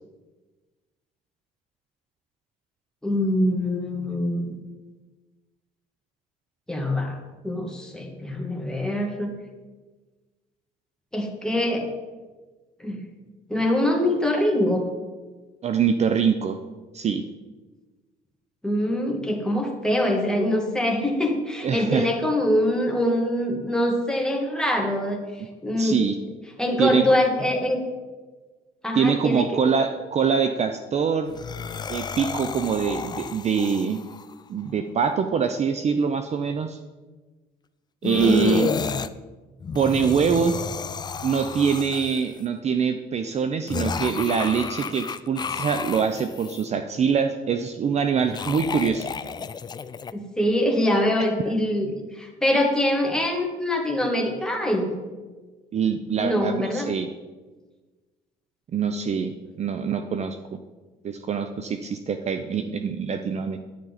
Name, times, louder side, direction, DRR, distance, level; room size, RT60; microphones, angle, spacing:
voice 1, 3.0-4.6 6.7-7.2 7.4-9.3 11.1-11.9 12.8-13.0 13.5-14.9 18.6-25.2 25.6-26.0 26.6-27.8 28.8-29.6 38.1-38.7 50.1-54.9 56.2-56.9, left 1 dB, 5° left, 1 dB, 2.0 m, -24 dB
voice 2, 15.6-16.6 16.9-17.2 21.6-22.1 25.8-26.2 26.8-27.1 28.9-31.3 31.9-34.0 34.5-36.8 38.0-38.7 39.7-40.6 41.2-49.1 51.5-51.6 55.7-57.1 58.7-60.4 61.0-63.6, right 6 dB, 40° right, 8 dB, 0.6 m, -24 dB
sound 1, 31.3-34.3 38.0-39.1 39.6-42.4 43.7-46.6 48.2-50.1, left 6 dB, 25° left, 0.4 m, -31 dB
10.5 x 10.5 x 4.1 m, 1.3 s
cardioid pair, 110°, 17 cm